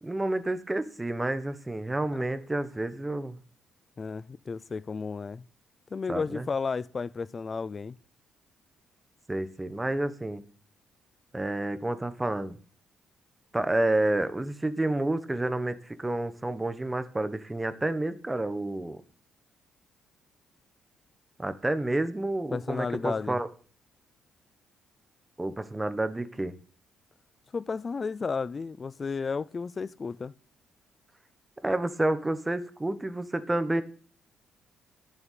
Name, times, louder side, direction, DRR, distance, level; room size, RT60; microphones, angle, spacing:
voice 1, 0.0-3.4 6.1-6.4 9.3-10.4 11.3-12.6 13.5-19.0 21.4-23.5 25.4-26.5 31.6-33.8, right 2 dB, 15° right, 1.2 m, -29 dB
voice 2, 4.0-5.4 5.9-8.0 22.5-23.4 27.5-30.3, left 5 dB, 35° left, 0.5 m, -33 dB
11.0 x 7.0 x 8.4 m
cardioid pair, 90°, 0 cm